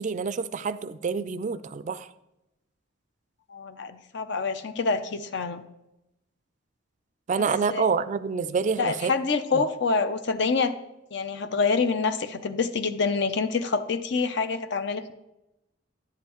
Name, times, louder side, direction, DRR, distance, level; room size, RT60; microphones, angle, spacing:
voice 1, 0.0-2.1 7.3-9.1, right 5 dB, 40° right, 14 dB, 0.3 m, -27 dB
voice 2, 3.5-5.6 7.7-7.8 8.8-10.7 11.1-15.1, left 4 dB, 60° left, 10 dB, 0.6 m, -26 dB
10.5 x 7.4 x 3.0 m, 0.92 s
head